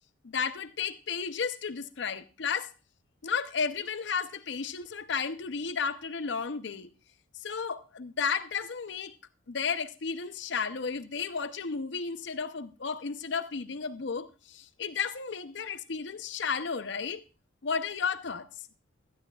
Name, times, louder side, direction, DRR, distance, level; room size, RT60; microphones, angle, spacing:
voice 1, 0.2-2.7 3.2-6.9 7.3-9.1 9.5-17.2 17.6-18.5, left 6 dB, 60° left, 0.6 m, -33 dB
16.0 x 12.0 x 2.3 m
head